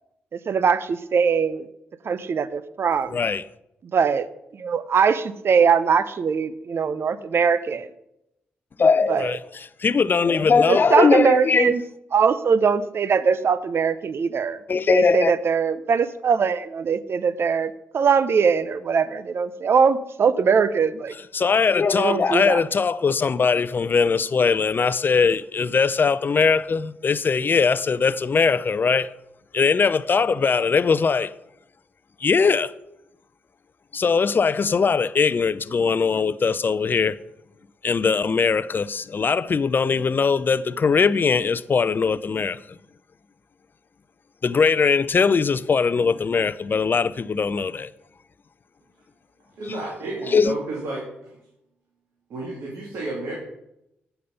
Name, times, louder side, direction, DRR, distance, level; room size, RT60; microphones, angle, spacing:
voice 1, 0.3-1.7 2.0-3.2 3.9-4.3 4.5-7.9 9.1-9.3 10.7-11.8 12.1-14.6 14.9-21.1 22.0-22.6, right 6 dB, 60° right, 0.7 m, -21 dB
voice 2, 3.1-3.4 8.8-11.7 14.7-15.3 21.3-29.1 29.5-31.3 32.2-32.7 33.9-37.2 37.8-42.8 44.4-47.9 50.3-50.5, left 5 dB, 45° left, 0.5 m, -20 dB
voice 3, 49.6-51.4 52.3-53.3, right 2 dB, 75° right, 2.6 m, -31 dB
8.6 x 6.9 x 5.3 m
supercardioid pair, 45°, 5 cm